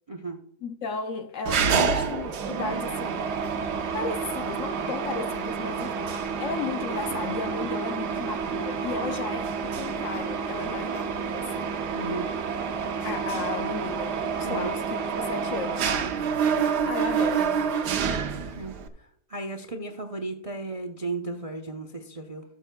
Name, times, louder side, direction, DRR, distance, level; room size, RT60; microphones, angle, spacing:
voice 1, 0.1-0.4 11.9-12.3 14.4-14.7 18.5-18.8 19.3-22.4, right 3 dB, 40° right, 0.5 m, -34 dB
voice 2, 0.6-3.3 3.9-11.7 13.0-15.9 16.8-17.6, left 5 dB, 65° left, 0.9 m, -34 dB
Mechanisms, 1.5-18.9, right 6 dB, 90° right, 1.4 m, -28 dB
17.5 x 7.4 x 2.2 m
omnidirectional pair, 1.7 m